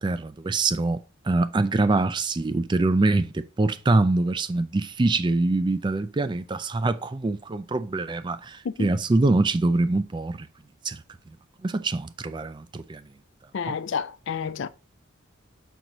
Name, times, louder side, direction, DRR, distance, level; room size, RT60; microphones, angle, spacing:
voice 1, 0.0-10.5 10.8-11.0 11.6-13.0 13.7-13.8, right 2 dB, 20° right, 0.3 m, -24 dB
voice 2, 13.5-14.7, left 6 dB, 60° left, 0.4 m, -30 dB
6.1 x 3.0 x 5.2 m
head